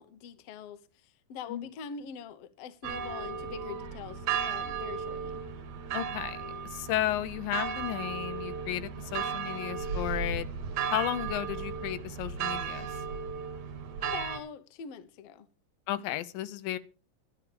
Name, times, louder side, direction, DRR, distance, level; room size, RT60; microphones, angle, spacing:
voice 1, 0.0-5.4 14.0-15.5, left 7 dB, 70° left, 1.6 m, -44 dB
sound 1, 2.8-14.4, right 6 dB, 65° right, 2.2 m, -35 dB
voice 2, 5.9-10.5 10.9-12.9 15.9-16.8, left 13 dB, 85° left, 2.4 m, -33 dB
11.5 x 11.0 x 5.0 m
omnidirectional pair, 4.0 m